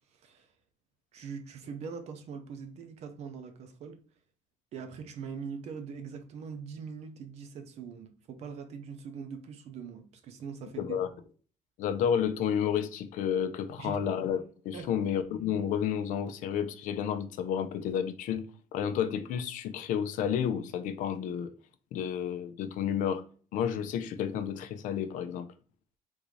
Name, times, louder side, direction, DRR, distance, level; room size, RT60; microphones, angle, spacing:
voice 1, 0.1-0.5 1.1-4.0 4.7-11.0 13.8-14.0 14.7-15.0, right 6 dB, 50° right, 0.6 m, -42 dB
voice 2, 10.8-11.1 11.8-21.5 21.9-23.2 23.5-25.5, left 8 dB, 60° left, 0.5 m, -31 dB
3.6 x 2.6 x 3.1 m
cardioid pair, 175°, 15 cm